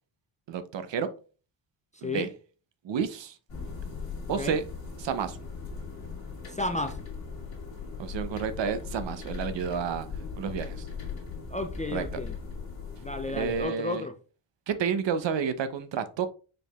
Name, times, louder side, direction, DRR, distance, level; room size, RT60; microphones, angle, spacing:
voice 1, 0.5-1.1 2.0-2.3 2.8-3.4 4.3-4.6 5.0-5.4 8.0-10.1 10.4-10.8 11.9-12.1 13.3-14.1 14.7-16.3, right 7 dB, 65° right, 0.7 m, -30 dB
sound 1, 3.5-13.7, left 5 dB, 45° left, 2.5 m, -39 dB
voice 2, 6.5-7.0 11.5-12.4 13.0-14.1, left 2 dB, 15° left, 0.4 m, -32 dB
4.9 x 4.6 x 2.3 m
cardioid pair, 100°, 49 cm